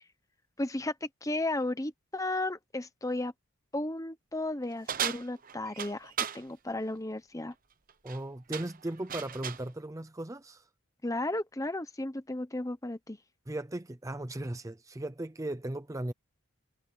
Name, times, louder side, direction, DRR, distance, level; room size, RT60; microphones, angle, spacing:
voice 1, 0.6-3.3 3.7-7.5 11.0-13.2, left 2 dB, 15° left, 1.0 m, -34 dB
sound 1, 4.9-6.4 7.9-8.2 8.5-9.7, right 8 dB, 40° right, 0.9 m, -35 dB
voice 2, 8.0-10.7 13.5-16.1, right 1 dB, 15° right, 0.6 m, -37 dB
head